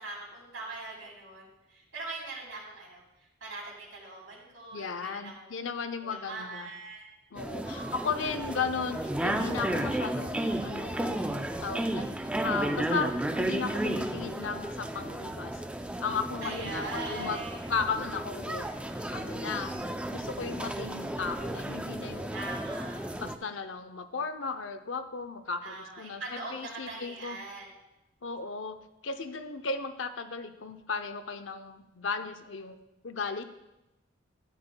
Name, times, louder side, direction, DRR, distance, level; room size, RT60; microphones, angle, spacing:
voice 1, 0.0-5.5 6.0-7.1 7.6-8.2 16.4-17.9 22.3-23.0 25.6-27.7, right 2 dB, 90° right, -3 dB, 3.4 m, -41 dB
voice 2, 4.7-6.7 7.3-11.3 11.6-12.2 12.4-15.6 16.0-16.8 17.1-17.4 17.7-18.7 19.1-19.7 20.1-22.4 23.1-27.4 28.2-32.8 33.0-33.4, left 5 dB, 75° left, 9 dB, 0.6 m, -35 dB
sound 1, 7.4-23.3, right 1 dB, 5° right, 0.4 m, -33 dB
12.5 x 9.5 x 2.2 m, 0.95 s
head